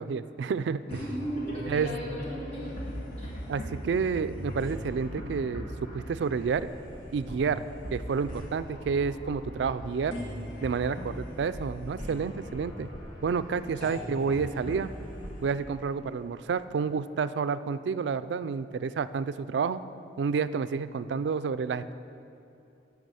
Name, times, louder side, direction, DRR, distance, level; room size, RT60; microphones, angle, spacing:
voice 1, 0.0-0.9 1.7-1.9 3.5-6.7 7.1-10.2 10.6-12.9 13.2-14.9 15.4-19.8 20.2-21.9, right 5 dB, 70° right, 14 dB, 0.3 m, -30 dB
sound 1, 0.9-16.5, equal, 50° left, 1.8 m, -40 dB
voice 2, 0.9-2.8 3.2-3.3 13.5-14.2, right 1 dB, 35° left, -6 dB, 2.5 m, -37 dB
11.5 x 4.8 x 8.0 m, 2.7 s
head